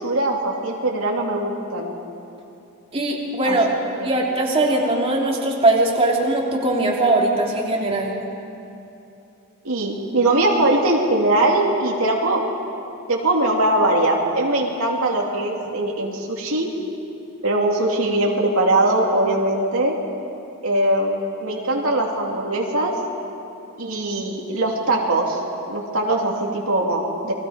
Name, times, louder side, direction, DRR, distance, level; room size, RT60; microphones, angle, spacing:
voice 1, 0.0-1.9 3.4-3.6 9.6-12.4 13.1-16.7 17.4-20.0 20.6-23.0 23.8-25.4 25.7-27.3, right 1 dB, 70° right, -1 dB, 2.8 m, -21 dB
voice 2, 2.9-3.7 4.0-8.1, right 2 dB, 25° right, -3 dB, 3.0 m, -20 dB
30.0 x 22.0 x 5.1 m, 2.8 s
head